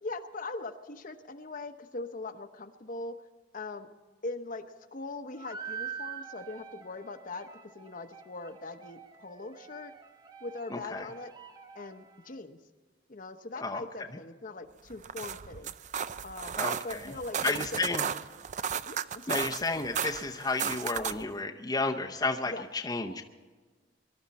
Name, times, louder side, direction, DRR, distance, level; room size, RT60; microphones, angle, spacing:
voice 1, 0.0-3.2 3.5-3.9 4.2-4.7 4.9-9.9 10.4-11.3 11.7-12.6 13.1-15.7 16.2-17.7 18.0-18.1 18.8-19.5 22.5-22.6, left 3 dB, 50° left, 7 dB, 0.9 m, -41 dB
sound 1, 5.3-12.4, right 7 dB, 25° right, 1.0 m, -45 dB
voice 2, 10.7-11.1 13.6-13.8 16.6-17.1 17.4-18.1 19.3-23.2, left 3 dB, 20° left, 2 dB, 0.7 m, -32 dB
sound 2, 14.9-21.3, right 8 dB, 45° right, 0.4 m, -35 dB
23.0 x 12.5 x 4.2 m, 1.4 s
head